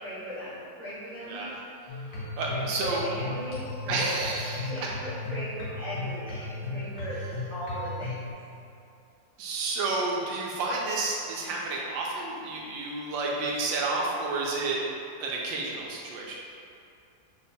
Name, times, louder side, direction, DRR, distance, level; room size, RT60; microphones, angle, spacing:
voice 1, 0.0-1.4 2.5-4.4 4.7-7.2 7.5-8.3, left 1 dB, 40° right, -12 dB, 0.7 m, -38 dB
voice 2, 1.3-1.6 2.1-3.0 3.9-4.7 9.4-14.8 15.2-16.4, right 3 dB, 85° right, -3 dB, 1.3 m, -30 dB
sound 1, 1.9-8.3, left 2 dB, 65° left, 1.0 m, -36 dB
3.4 x 2.2 x 3.9 m, 2.5 s
omnidirectional pair, 2.0 m